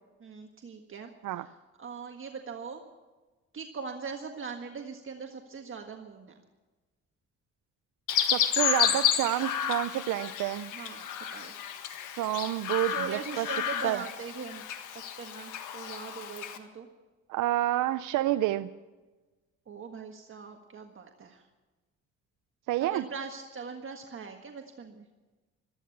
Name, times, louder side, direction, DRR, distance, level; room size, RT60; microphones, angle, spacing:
voice 1, 0.2-1.1 1.8-2.9 3.5-6.3 10.7-11.5 12.9-14.6 15.2-16.9 19.7-21.4 22.8-25.1, right 5 dB, 45° right, 3 dB, 1.6 m, -41 dB
Chirp tweet, 8.1-16.6, left 9 dB, 85° left, 1.6 m, -31 dB
voice 2, 8.3-10.7 12.2-13.5 13.8-14.0 17.3-18.7 22.7-23.0, right 14 dB, 80° right, 11 dB, 0.6 m, -29 dB
14.5 x 14.0 x 7.2 m, 1.2 s
cardioid pair, 90°, 30 cm